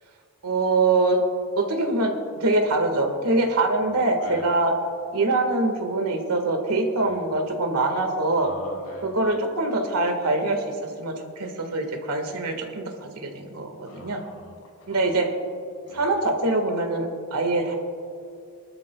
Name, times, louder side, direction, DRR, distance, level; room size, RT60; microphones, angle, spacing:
voice 1, 0.4-1.2 1.6-4.7 5.1-8.5 9.0-14.2 14.9-15.3 15.9-17.8, right 2 dB, 85° right, 4 dB, 1.7 m, -24 dB
voice 2, 8.4-9.1 13.9-15.0 15.8-16.1, equal, 75° left, -1 dB, 3.1 m, -42 dB
22.5 x 13.0 x 2.3 m, 2.4 s
head